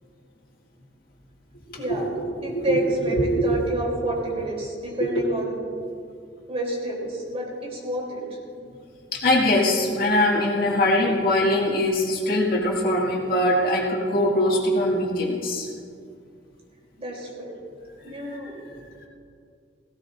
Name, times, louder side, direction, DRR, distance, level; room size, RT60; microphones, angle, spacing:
voice 1, 1.8-2.1 2.4-5.5 6.5-8.2 17.0-17.5 18.0-18.6, right 1 dB, 35° right, -3 dB, 3.5 m, -29 dB
voice 2, 2.5-3.5 9.1-15.7 18.3-18.4, left 1 dB, 55° left, -2 dB, 2.2 m, -22 dB
18.0 x 17.5 x 2.7 m, 2.3 s
head